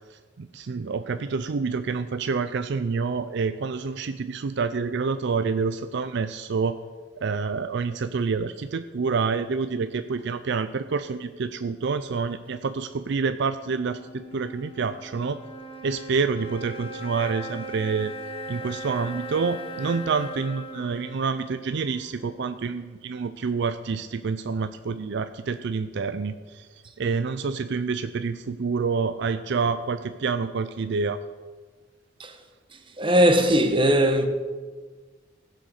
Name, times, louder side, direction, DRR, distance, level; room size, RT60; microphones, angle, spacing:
voice 1, 0.1-6.8 7.2-15.4 15.8-18.1 18.5-31.2, right 5 dB, 65° right, 0.4 m, -28 dB
sound 1, 13.6-23.0, right 1 dB, 30° left, 1.1 m, -39 dB
voice 2, 33.0-34.3, equal, 25° right, 1.1 m, -19 dB
15.5 x 6.6 x 6.5 m
head